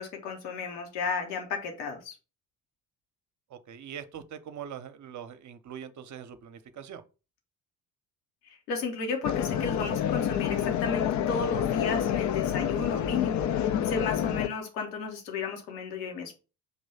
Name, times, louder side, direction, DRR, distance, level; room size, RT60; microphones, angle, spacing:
voice 1, 0.0-2.1 8.4-16.3, left 5 dB, 70° left, 1.4 m, -33 dB
voice 2, 3.5-7.0, right 8 dB, 35° right, 0.8 m, -42 dB
sound 1, 9.2-14.5, left 9 dB, 35° left, 0.6 m, -28 dB
6.0 x 3.1 x 5.5 m
figure-of-eight pair, 45°, 49 cm